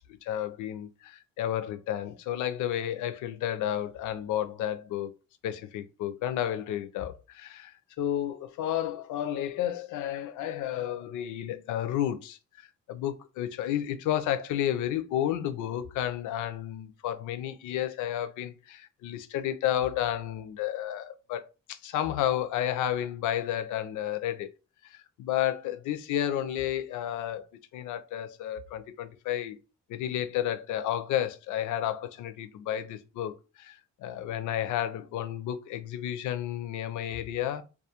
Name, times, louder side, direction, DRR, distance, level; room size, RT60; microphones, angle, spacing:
voice 1, 0.0-5.1 5.4-12.4 12.9-24.5 24.8-27.5 27.7-29.6 29.9-37.6, left 11 dB, 80° left, 0.5 m, -31 dB
2.3 x 2.2 x 2.8 m
cardioid pair, 90°, 30 cm